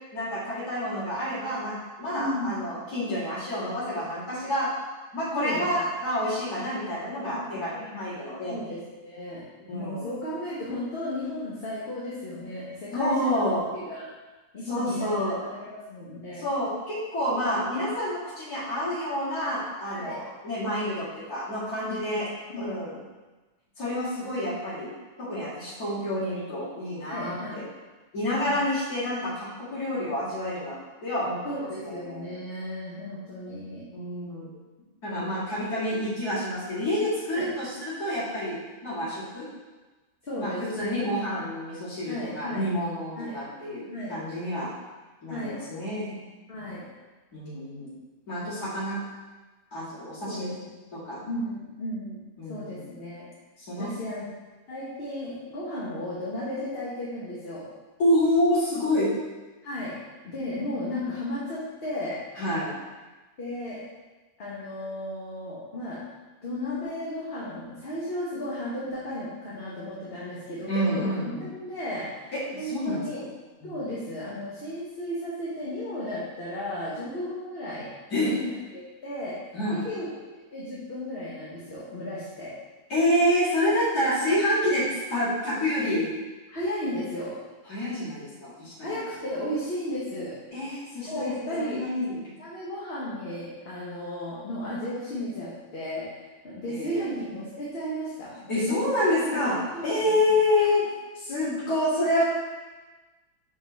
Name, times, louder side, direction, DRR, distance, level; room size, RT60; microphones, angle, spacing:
voice 1, 0.1-4.7 5.1-8.6 9.7-10.1 12.9-13.6 14.6-15.4 16.4-22.3 22.6-23.0 23.8-24.9 25.2-27.6 28.1-30.8 31.0-32.3 33.9-34.5 35.0-38.6 38.8-39.5 40.4-44.7 45.2-46.2 47.3-48.0 48.3-49.0 49.7-50.6 50.9-51.2 52.4-52.9 53.7-53.9 58.0-59.1 62.3-62.8 70.7-71.4 72.3-73.0 73.6-73.8 78.1-78.3 79.5-79.8 82.9-86.1 87.7-89.0 90.5-92.2 96.7-97.1 98.4-102.2, left 1 dB, 85° left, -11 dB, 2.7 m, -28 dB
voice 2, 2.1-2.7 5.3-5.6 7.3-8.0 8.5-9.4 9.7-13.4 13.7-14.1 14.5-16.4 19.9-20.2 21.8-22.2 22.5-23.0 27.0-27.6 28.2-28.6 31.4-33.8 37.3-37.5 40.3-41.1 42.1-42.6 43.2-43.4 43.9-44.1 45.3-45.6 46.5-46.8 50.2-50.7 51.3-52.2 52.5-53.2 53.8-54.2 54.7-57.7 59.6-59.9 60.2-62.2 63.4-63.8 64.4-66.0 66.4-73.2 73.6-77.9 78.3-79.3 79.7-80.2 80.5-82.5 83.9-84.3 86.5-87.4 88.8-90.4 91.1-91.8 92.4-96.1 96.4-98.3 99.7-100.2, left 1 dB, 45° left, -8 dB, 1.3 m, -34 dB
5.6 x 4.5 x 4.0 m, 1.2 s
omnidirectional pair, 1.6 m